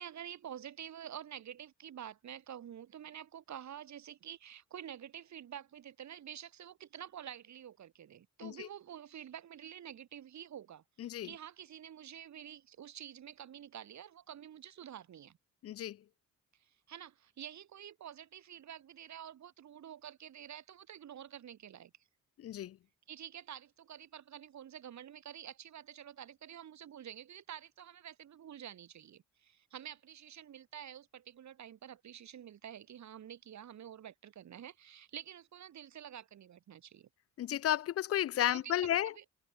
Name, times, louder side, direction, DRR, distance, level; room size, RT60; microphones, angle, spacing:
voice 1, 0.0-15.4 16.6-21.9 23.1-37.1 38.5-38.9 39.1-39.2, right 10 dB, 60° right, 3.4 m, -49 dB
voice 2, 15.6-16.0 22.4-22.8 37.4-39.1, left 12 dB, 50° left, 0.4 m, -33 dB
wide cardioid pair, 170°, 31 cm